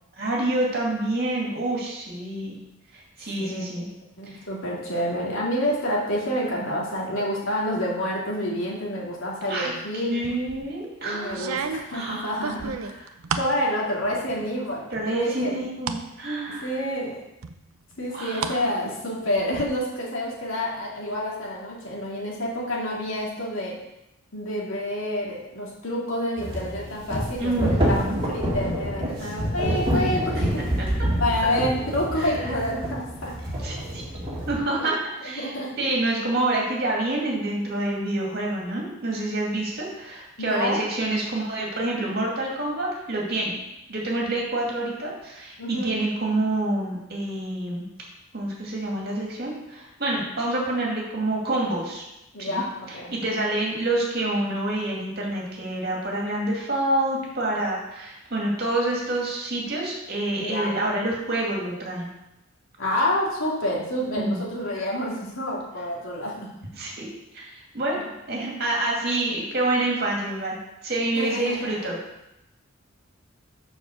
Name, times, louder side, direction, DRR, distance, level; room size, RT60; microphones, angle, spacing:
voice 1, 0.2-2.6 2.9-3.9 4.3-4.4 9.5-11.5 11.9-12.3 14.9-16.7 18.1-18.7 27.4-28.2 30.3-30.9 32.2-32.7 33.6-34.0 34.5-34.9 35.2-43.6 43.9-47.8 48.3-52.0 52.4-62.1 64.2-64.4 66.8-67.1 67.3-68.0 68.3-70.6 70.8-72.0, right 2 dB, 50° right, -3 dB, 2.4 m, -27 dB
voice 2, 4.2-10.2 11.0-13.1 13.3-15.5 16.6-17.2 18.0-23.8 24.3-30.7 31.2-33.3 34.8-35.0 35.2-35.7 40.4-40.8 45.6-46.0 52.3-53.2 60.4-60.7 62.8-66.5 71.2-71.7, left 1 dB, 75° left, -4 dB, 2.5 m, -28 dB
sound 1, 10.2-10.7 11.3-13.6 14.0-14.6 14.9-16.0 16.5-16.6 17.4-18.6 18.9-19.6, right 5 dB, 90° right, 0.6 m, -32 dB
sound 2, 26.4-34.6, equal, 25° right, 2.3 m, -27 dB
7.2 x 5.7 x 6.6 m, 0.91 s
head